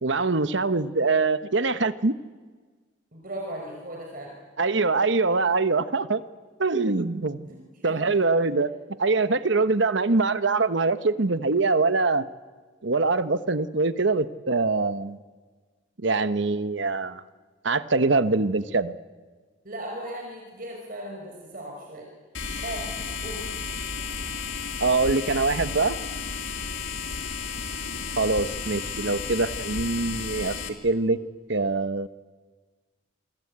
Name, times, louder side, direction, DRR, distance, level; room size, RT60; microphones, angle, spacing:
voice 1, 0.0-2.1 4.6-6.2 6.6-7.5 7.8-8.7 9.0-12.2 12.8-15.2 16.0-17.2 17.6-18.9 24.8-26.0 28.2-31.2 31.5-32.1, right 3 dB, 65° right, 13 dB, 1.1 m, -23 dB
voice 2, 3.1-4.3 7.5-8.1 19.6-22.1 22.6-23.5, right 1 dB, 45° right, 0 dB, 5.1 m, -37 dB
sound 1, 22.3-30.7, left 5 dB, 75° left, 2.8 m, -33 dB
28.0 x 24.0 x 8.7 m, 1.4 s
head